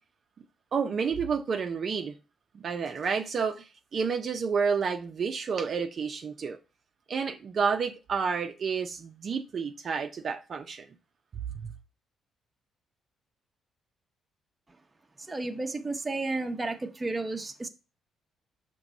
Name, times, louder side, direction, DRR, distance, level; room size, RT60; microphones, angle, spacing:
voice 1, 0.7-2.2 2.5-6.6 7.1-10.9 11.5-11.7, right 5 dB, 50° right, 0.6 m, -30 dB
voice 2, 15.3-17.7, right 2 dB, 20° right, 0.8 m, -32 dB
5.9 x 3.0 x 5.3 m
cardioid pair, 90°, 0 cm